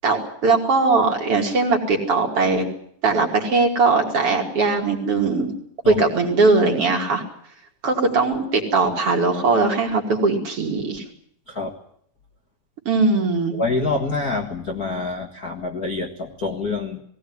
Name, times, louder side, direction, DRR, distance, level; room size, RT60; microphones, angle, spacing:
voice 1, 0.0-2.7 3.0-5.5 5.9-7.2 7.8-11.0 12.8-13.5, right 3 dB, 40° right, 2 dB, 3.0 m, -20 dB
voice 2, 13.5-17.0, left 3 dB, 40° left, 1 dB, 1.3 m, -26 dB
18.5 x 17.5 x 9.5 m, 0.65 s
omnidirectional pair, 4.3 m